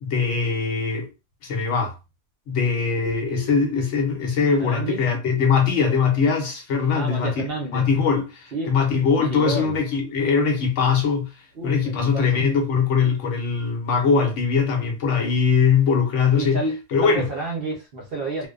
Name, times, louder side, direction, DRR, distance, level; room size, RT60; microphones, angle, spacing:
voice 1, 0.0-1.1 1.4-1.9 2.5-7.5 7.7-11.3 11.6-16.6 16.9-17.3, left 5 dB, 75° left, 1.1 m, -21 dB
sound 1, 3.0-4.7, right 3 dB, 40° left, 0.8 m, -39 dB
voice 2, 4.6-5.0 6.9-7.9 8.5-8.7 9.1-9.7 11.5-12.4 16.3-18.5, right 2 dB, 55° right, 0.8 m, -30 dB
2.5 x 2.1 x 2.4 m
omnidirectional pair, 1.3 m